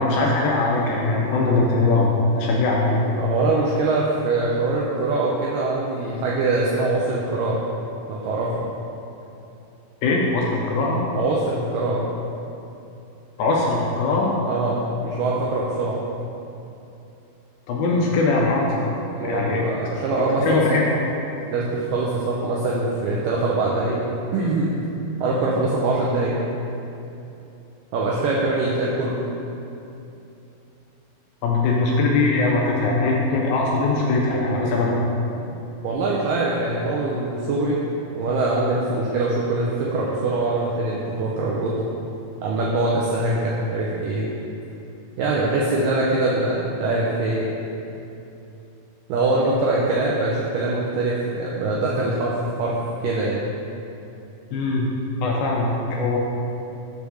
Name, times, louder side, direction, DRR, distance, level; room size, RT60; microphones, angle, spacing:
voice 1, 0.0-2.1 2.4-3.2 10.0-11.1 13.4-14.4 17.7-18.8 19.2-19.6 20.4-20.8 31.4-35.0 54.5-54.9 55.2-56.2, left 3 dB, 80° left, -3 dB, 2.3 m, -21 dB
voice 2, 3.2-7.7 8.1-8.7 11.2-12.1 14.5-16.0 19.2-20.8 21.5-24.0 24.3-24.7 25.2-26.4 27.9-29.2 35.8-41.7 42.4-44.4 45.2-47.5 49.1-52.3 52.6-52.8 53.0-53.4, right 2 dB, 85° right, -4 dB, 1.9 m, -23 dB
6.7 x 3.5 x 6.1 m, 2.8 s
omnidirectional pair, 4.6 m